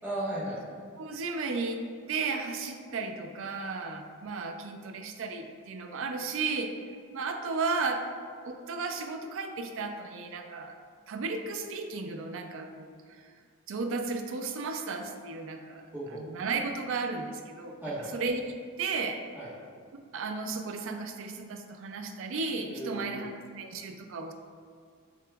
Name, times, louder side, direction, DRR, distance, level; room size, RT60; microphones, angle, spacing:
voice 1, 0.0-0.6 15.9-16.2 17.8-18.1 19.3-19.5 22.7-23.2, right 1 dB, 10° right, -10 dB, 1.3 m, -35 dB
voice 2, 1.0-1.8 2.1-6.7 7.1-8.0 8.4-10.8 11.1-12.9 13.7-17.7 18.1-19.2 20.1-24.3, right 4 dB, 65° right, 5 dB, 0.4 m, -34 dB
6.7 x 2.9 x 2.3 m, 2.1 s
head